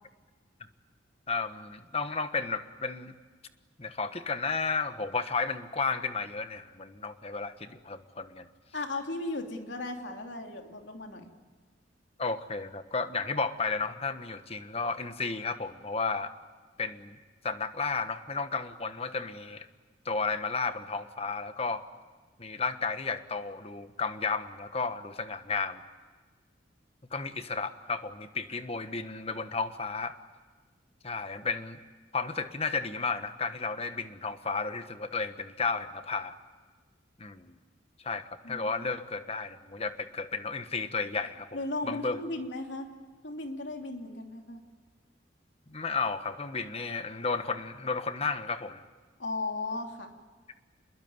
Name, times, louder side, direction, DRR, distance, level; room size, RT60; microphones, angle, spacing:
voice 1, 1.3-3.1 3.8-8.5 12.2-16.3 16.8-17.2 17.4-19.7 20.0-21.8 22.4-25.8 27.1-30.1 31.0-31.8 32.1-36.3 37.2-37.6 38.0-41.5 41.8-42.2 45.7-48.8, left 4 dB, 35° left, 10 dB, 1.3 m, -33 dB
voice 2, 8.7-11.3 38.4-38.7 41.5-42.9 43.2-44.6 49.2-50.1, left 2 dB, 80° left, 3 dB, 3.1 m, -36 dB
27.5 x 21.5 x 9.6 m, 1.4 s
head